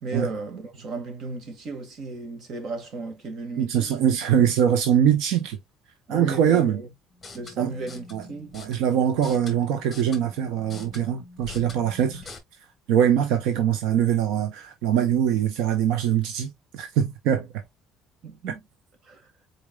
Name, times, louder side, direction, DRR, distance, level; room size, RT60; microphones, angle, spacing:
voice 1, 0.0-3.9 6.1-6.9 7.3-8.6 12.1-12.3 18.2-18.7 19.0-19.2, right 3 dB, 50° right, 1.9 m, -34 dB
voice 2, 3.6-5.6 6.1-6.8 7.6-7.7 8.1-8.2 8.5-12.2 12.9-17.5, right 9 dB, 85° right, 0.9 m, -23 dB
sound 1, 7.1-12.4, left 3 dB, 15° left, 1.7 m, -44 dB
4.9 x 4.4 x 2.3 m
cardioid pair, 150°, 0 cm